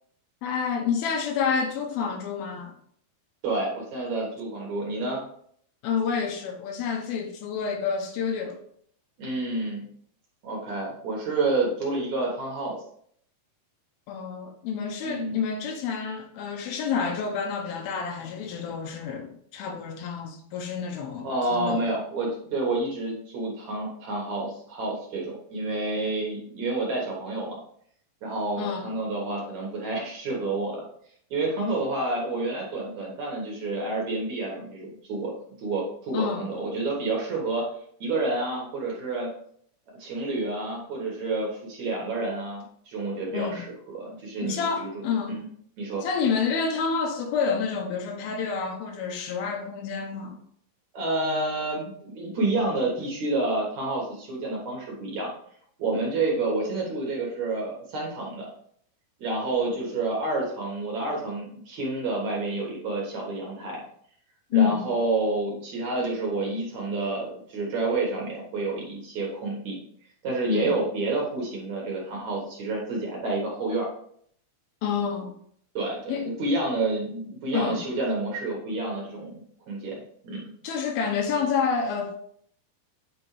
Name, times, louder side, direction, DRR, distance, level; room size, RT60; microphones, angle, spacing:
voice 1, 0.4-2.7 5.8-8.6 14.1-21.8 28.6-28.9 36.1-36.5 43.3-43.6 44.4-45.4 46.0-50.4 64.5-64.8 70.5-70.7 72.1-72.2 74.8-75.3 76.1-76.3 77.5-77.8 80.6-82.2, left 6 dB, 75° left, 2.5 m, -28 dB
voice 2, 3.4-5.2 9.2-9.8 10.4-12.8 15.0-15.4 21.2-27.6 28.2-30.8 31.3-35.3 35.6-37.7 38.0-39.3 40.0-45.5 45.8-46.1 50.9-55.3 55.8-58.5 59.2-63.8 64.5-69.8 70.2-73.9 75.7-79.9 80.2-80.4, right 2 dB, 60° right, 2.3 m, -29 dB
8.9 x 4.4 x 3.1 m
omnidirectional pair, 4.5 m